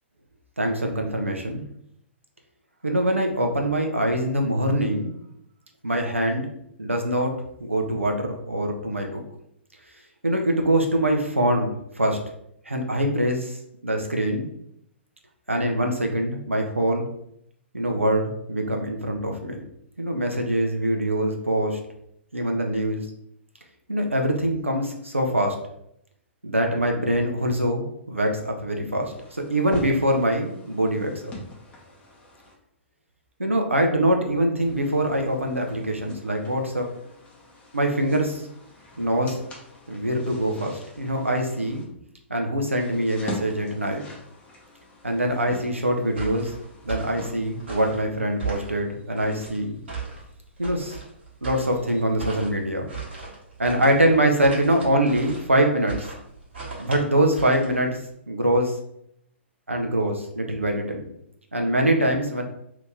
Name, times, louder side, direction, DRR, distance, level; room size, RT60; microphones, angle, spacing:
voice 1, 0.6-1.6 2.8-5.1 5.8-6.5 6.8-7.3 7.6-9.2 10.2-12.2 12.7-13.6 13.8-14.5 15.5-17.1 17.7-19.6 20.0-21.8 22.3-23.1 23.9-25.6 26.4-31.3 33.4-36.9 37.7-38.4 39.0-39.4 39.9-41.8 42.3-44.0 45.0-46.5 46.8-49.8 50.6-51.0 51.4-52.9 53.6-56.0 56.8-58.0 58.3-58.7 59.7-61.1 61.5-62.4, right 1 dB, 85° right, 2 dB, 0.6 m, -24 dB
sound 1, 29.0-32.5 34.6-41.8 42.8-47.8, left 1 dB, 20° left, 0.8 m, -44 dB
sound 2, 46.1-58.1, right 5 dB, 60° right, 1.3 m, -37 dB
2.9 x 2.6 x 3.4 m, 0.75 s
figure-of-eight pair, 115°, 7 cm